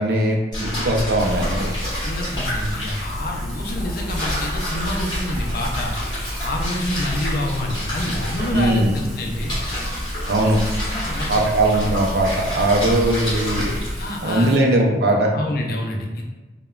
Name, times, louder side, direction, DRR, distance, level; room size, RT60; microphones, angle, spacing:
voice 1, 0.0-1.7 8.5-8.9 10.3-10.6 11.3-13.8 14.2-15.3, right 1 dB, 60° right, 0 dB, 0.4 m, -19 dB
sound 1, 0.5-14.1, equal, 25° left, 1.0 m, -27 dB
Rain, 1.2-14.6, equal, 5° right, 0.8 m, -40 dB
voice 2, 1.9-9.5 10.8-11.4 14.0-14.5 15.3-16.2, left 1 dB, 50° left, 0 dB, 0.4 m, -28 dB
sound 2, 3.6-10.5, equal, 35° right, 0.9 m, -40 dB
2.8 x 2.1 x 2.3 m, 1.2 s
head